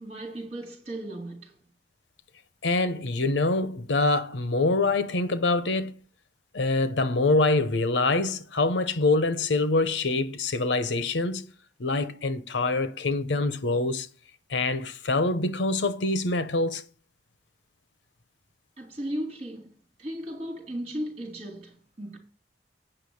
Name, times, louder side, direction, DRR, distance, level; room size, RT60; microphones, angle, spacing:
voice 1, 0.0-1.6 18.8-19.7 20.0-22.2, right 1 dB, 35° right, 3.5 m, -36 dB
voice 2, 2.6-5.9 6.5-11.4 11.8-14.1 14.5-16.8, left 2 dB, 90° left, 0.9 m, -25 dB
8.9 x 6.0 x 6.4 m
head